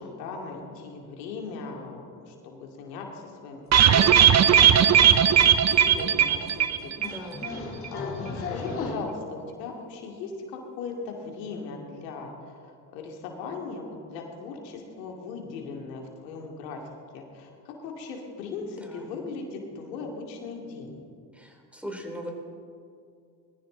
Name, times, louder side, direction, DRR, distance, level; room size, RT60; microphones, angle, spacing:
voice 1, 0.0-4.8 5.1-6.9 7.2-7.3 7.6-16.8 17.1-21.0, left 4 dB, 85° left, 1 dB, 2.5 m, -38 dB
sound 1, 3.7-7.2 7.4-7.5 7.8-7.9, right 9 dB, 35° right, 0.8 m, -18 dB
sound 2, 3.8-3.9 4.2-4.5 4.8-4.9 5.1-5.2 5.4-5.5 5.7-6.0 6.5-6.6 7.0-8.9, left 3 dB, 25° left, 3.2 m, -35 dB
voice 2, 7.0-7.5 18.8-19.1 21.3-22.3, equal, 5° right, 2 dB, 3.0 m, -39 dB
20.0 x 14.5 x 3.9 m, 2.3 s
supercardioid pair, 80°, 48 cm